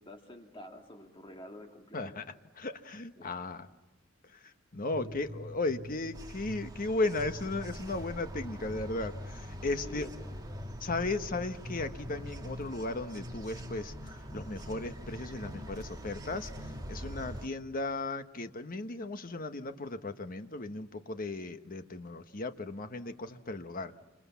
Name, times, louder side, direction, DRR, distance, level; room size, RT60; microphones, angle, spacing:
voice 1, 0.0-2.2 3.2-3.3 4.9-5.2 9.8-10.4, left 1 dB, 25° left, 3 dB, 2.1 m, -49 dB
voice 2, 1.9-2.2 2.6-3.7 4.7-10.1 10.8-13.9 14.3-16.5 16.9-23.9, left 2 dB, 45° left, 8 dB, 1.2 m, -36 dB
sound 1, 4.9-6.7 7.2-9.8 10.2-12.7 13.2-15.7 16.2-16.8, left 1 dB, 5° right, 6.7 m, -45 dB
sound 2, 6.1-17.5, right 1 dB, 20° right, 2.0 m, -45 dB
29.5 x 26.5 x 7.2 m, 1.1 s
head